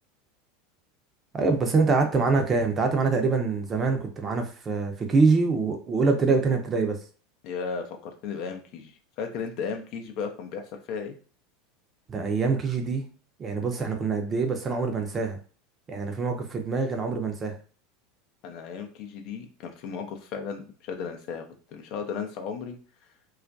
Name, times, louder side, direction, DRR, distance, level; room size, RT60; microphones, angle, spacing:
voice 1, 1.3-7.0 12.1-13.1 13.4-15.4 15.9-17.6, right 4 dB, 30° right, 4 dB, 0.5 m, -25 dB
voice 2, 7.4-11.1 18.4-22.8, left 6 dB, 55° left, 5 dB, 0.4 m, -35 dB
2.3 x 2.1 x 2.5 m, 0.40 s
hypercardioid pair, 80°, 0 cm